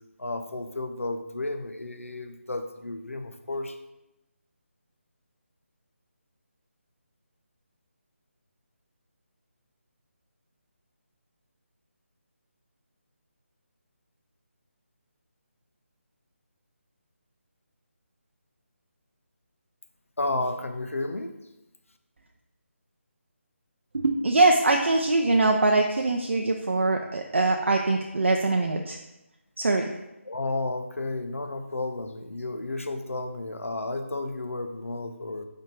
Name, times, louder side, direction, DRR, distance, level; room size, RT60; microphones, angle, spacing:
voice 1, 0.2-3.8 20.2-21.3 30.2-35.4, left 2 dB, 75° left, 7 dB, 0.7 m, -32 dB
voice 2, 23.9-29.0 29.6-29.9, right 2 dB, 65° right, 2 dB, 0.5 m, -23 dB
5.1 x 4.3 x 4.6 m, 0.97 s
figure-of-eight pair, 155°, 7 cm